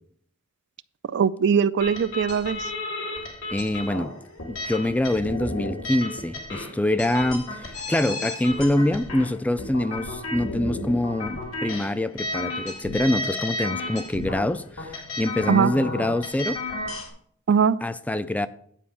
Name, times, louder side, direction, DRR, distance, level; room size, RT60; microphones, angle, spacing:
voice 1, 1.1-2.7 15.5-15.7 17.5-17.8, right 7 dB, 55° right, 0.4 m, -21 dB
sound 1, 1.8-17.1, left 2 dB, 75° left, 2.4 m, -33 dB
voice 2, 3.5-4.1 4.5-16.6 17.8-18.5, left 1 dB, 5° left, 0.4 m, -25 dB
10.0 x 5.1 x 6.9 m
head